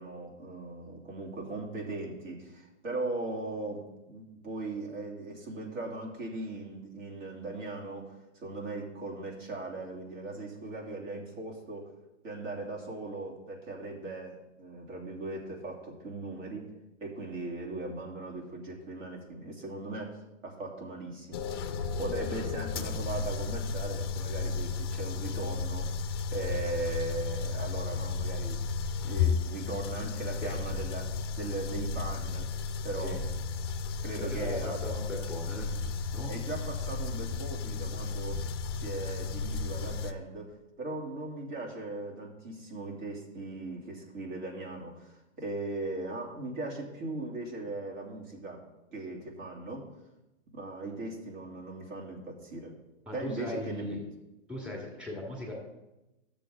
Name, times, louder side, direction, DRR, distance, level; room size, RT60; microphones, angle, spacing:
voice 1, 0.0-11.9 12.2-16.7 17.0-21.6 22.0-26.0 26.3-28.6 29.0-32.5 32.8-33.2 34.0-34.8 36.3-38.5 38.7-48.6 48.9-49.9 50.5-52.7 53.1-54.0, right 2 dB, 75° right, -3 dB, 3.2 m, -39 dB
sound 1, 21.3-40.1, left 4 dB, 20° left, 0.4 m, -33 dB
voice 2, 34.2-35.7 36.1-36.3 53.1-54.0 54.5-55.5, left 1 dB, 5° right, -2 dB, 2.1 m, -38 dB
13.0 x 6.8 x 3.9 m, 0.98 s
hypercardioid pair, 145°, 39 cm